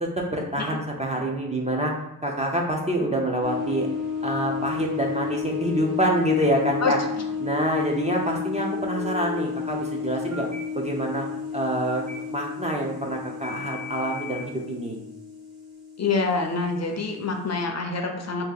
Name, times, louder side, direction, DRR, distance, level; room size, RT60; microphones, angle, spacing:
voice 1, 0.0-1.9 2.2-3.9 4.2-7.0 7.4-10.5 10.7-11.3 11.5-12.0 12.3-15.0, right 1 dB, 20° right, 0 dB, 0.4 m, -26 dB
sound 1, 3.4-17.6, left 6 dB, 75° right, 0.9 m, -32 dB
Telephone, 5.4-5.9 8.9-9.4 10.3-10.6 11.9-12.2 13.4-14.4, left 3 dB, 55° right, 1.2 m, -38 dB
voice 2, 16.0-18.5, left 4 dB, 50° left, 3 dB, 0.5 m, -26 dB
2.7 x 2.7 x 3.8 m, 0.86 s
wide cardioid pair, 145°, 36 cm